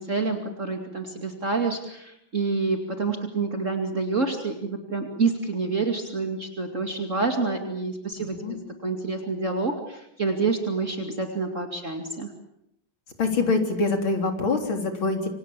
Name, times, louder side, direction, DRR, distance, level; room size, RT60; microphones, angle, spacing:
voice 1, 0.0-12.3, right 4 dB, 35° right, 4 dB, 2.7 m, -28 dB
voice 2, 8.2-8.6 13.2-15.3, left 3 dB, 75° left, 5 dB, 4.3 m, -25 dB
27.5 x 25.5 x 7.5 m, 0.79 s
omnidirectional pair, 2.2 m